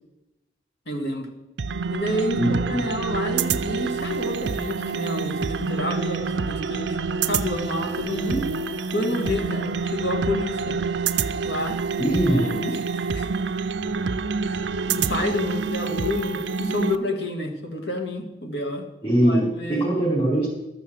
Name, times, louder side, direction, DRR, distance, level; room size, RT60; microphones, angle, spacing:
voice 1, 0.9-1.3 1.9-7.0 7.2-8.5 8.9-10.8 11.4-11.8 12.3-13.3 14.4-14.6 14.9-18.9 19.2-19.9, left 1 dB, 70° left, 4 dB, 1.8 m, -29 dB
sound 1, 1.6-17.0, right 5 dB, 90° right, 0.6 m, -27 dB
voice 2, 2.4-2.8 12.0-12.6 19.0-20.5, right 1 dB, 30° left, -7 dB, 4.5 m, -21 dB
12.5 x 7.0 x 7.7 m, 0.98 s
head